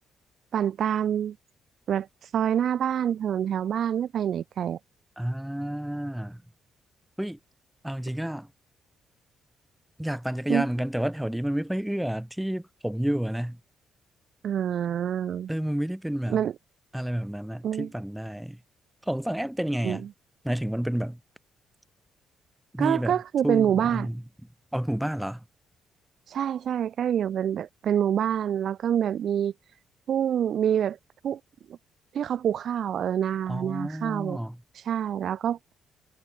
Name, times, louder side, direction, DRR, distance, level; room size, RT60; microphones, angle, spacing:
voice 1, 0.5-1.4 1.9-2.1 2.3-4.8 10.5-10.6 14.4-15.5 16.3-16.5 17.6-17.9 19.8-20.0 22.8-24.1 26.3-29.5 30.1-31.0 31.2-31.4 32.1-34.4 34.9-35.7, right 9 dB, 65° right, 0.3 m, -26 dB
voice 2, 5.2-6.4 7.2-7.4 7.8-8.5 10.0-13.6 15.5-16.4 16.9-18.6 19.0-20.1 20.4-21.2 22.7-23.2 23.4-24.2 24.7-25.4 33.5-34.6, right 1 dB, 5° right, 0.8 m, -30 dB
cardioid pair, 90°, 0 cm